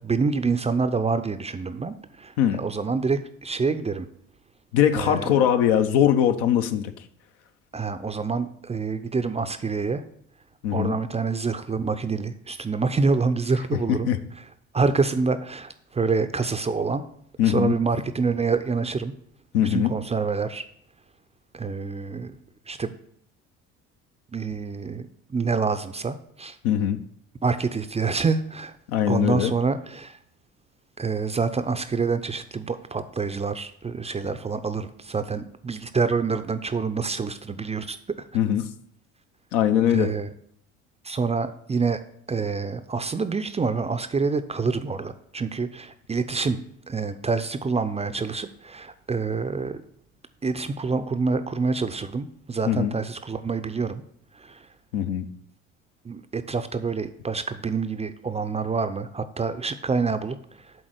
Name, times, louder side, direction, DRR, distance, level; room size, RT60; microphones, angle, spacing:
voice 1, 0.0-4.1 4.9-5.4 7.7-10.0 10.7-14.1 14.7-17.0 17.4-19.1 19.6-20.6 21.5-22.4 22.7-22.9 24.3-26.6 27.4-28.8 29.1-30.2 31.0-38.3 39.9-40.3 41.0-42.0 42.3-46.6 46.9-49.8 50.4-54.0 54.3-54.7 56.0-60.4 60.6-60.7, right 4 dB, 15° right, 10 dB, 0.5 m, -27 dB
voice 2, 4.7-6.9 10.6-10.9 13.9-14.2 17.4-17.7 19.5-19.9 26.6-27.0 28.9-29.5 38.3-38.7 39.5-40.1 52.7-52.9 54.9-55.3, left 10 dB, 70° left, 8 dB, 0.9 m, -21 dB
7.5 x 4.0 x 6.5 m, 0.67 s
hypercardioid pair, 65°, 38 cm